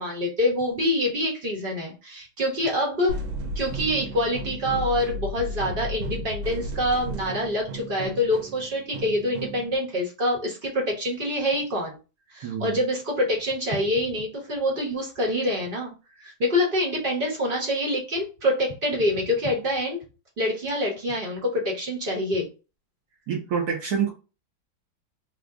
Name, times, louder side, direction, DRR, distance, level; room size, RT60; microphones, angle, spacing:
voice 1, 0.0-3.1 3.5-12.0 12.3-15.9 16.2-20.0 20.4-22.5, left 1 dB, 40° right, -1 dB, 0.8 m, -26 dB
sound 1, 3.1-9.7, equal, 85° right, 1.5 m, -34 dB
voice 2, 12.4-12.8 23.3-24.1, right 7 dB, 65° right, 1 dB, 1.0 m, -27 dB
3.4 x 2.0 x 3.5 m, 0.32 s
omnidirectional pair, 2.2 m